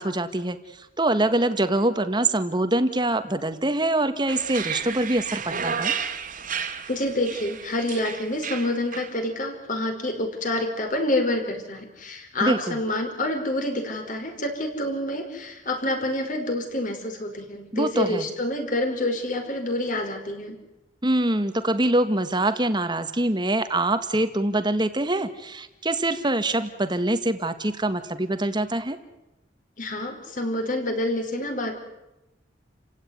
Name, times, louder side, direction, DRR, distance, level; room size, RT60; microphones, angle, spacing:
voice 1, 0.0-5.9 12.4-12.8 17.7-18.3 21.0-29.0, right 1 dB, 25° right, 10 dB, 1.8 m, -24 dB
sound 1, 4.3-9.1, right 7 dB, 45° right, 2.4 m, -32 dB
voice 2, 6.9-20.6 29.8-31.8, left 1 dB, 45° left, 5 dB, 5.3 m, -27 dB
30.0 x 16.5 x 9.7 m, 0.96 s
head